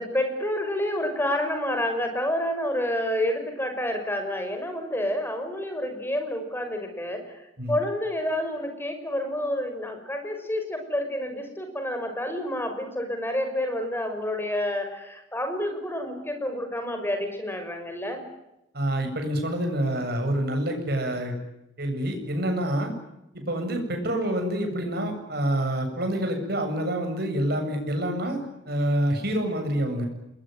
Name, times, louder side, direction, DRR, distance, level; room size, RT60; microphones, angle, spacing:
voice 1, 0.0-7.3 7.7-18.2, left 1 dB, 10° left, 6 dB, 6.1 m, -29 dB
voice 2, 18.7-21.3 21.8-22.9 23.3-30.1, right 1 dB, 60° right, 5 dB, 7.8 m, -27 dB
28.5 x 22.0 x 9.4 m, 0.87 s
head